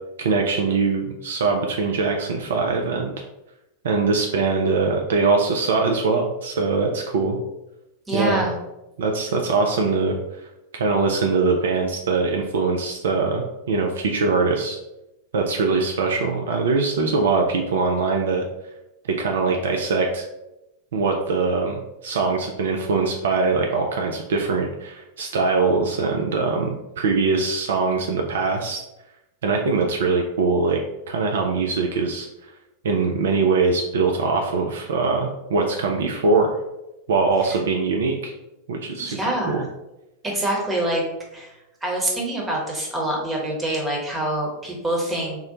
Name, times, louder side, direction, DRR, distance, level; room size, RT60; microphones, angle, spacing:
voice 1, 0.2-3.1 3.8-7.4 8.1-8.5 9.0-10.5 10.7-14.8 15.3-18.5 19.2-20.2 20.9-28.8 29.4-30.8 31.1-32.3 32.8-36.5 37.1-38.3 38.7-39.2 39.5-39.7, right 4 dB, 60° right, 2 dB, 0.3 m, -22 dB
voice 2, 8.1-8.5 37.4-37.6 39.0-39.7 40.2-41.0 41.3-41.5 41.8-45.4, right 1 dB, 15° right, -2 dB, 1.0 m, -25 dB
3.6 x 2.1 x 2.8 m, 0.94 s
figure-of-eight pair, 90°, 0 cm